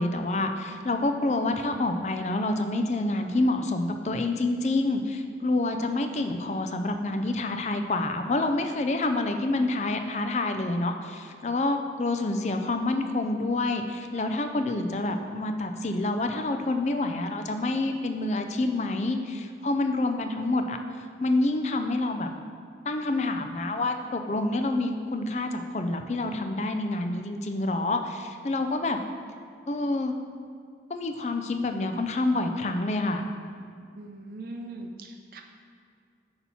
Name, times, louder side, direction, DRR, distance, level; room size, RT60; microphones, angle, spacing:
voice 1, 0.0-20.8 21.2-22.3 22.9-29.0 29.7-30.1 30.9-33.2, left 2 dB, 40° left, 6 dB, 0.4 m, -27 dB
voice 2, 33.9-35.4, right 2 dB, 55° right, 3 dB, 0.6 m, -40 dB
8.3 x 2.9 x 5.5 m, 2.3 s
head